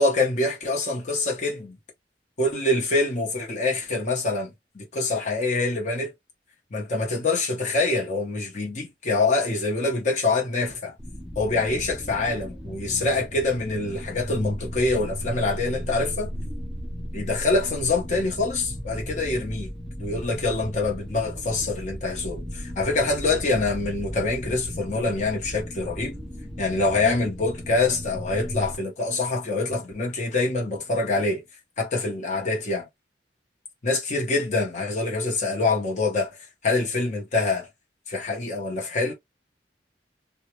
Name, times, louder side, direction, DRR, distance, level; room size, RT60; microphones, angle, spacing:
voice 1, 0.0-1.8 2.4-6.1 6.7-10.9 11.4-16.3 17.1-19.7 20.0-26.2 26.6-31.4 31.8-32.9 33.8-37.7 38.1-39.1, left 3 dB, 40° left, 0.8 m, -25 dB
sound 1, 11.0-28.8, equal, ahead, 0.6 m, -36 dB
2.2 x 2.1 x 3.0 m
head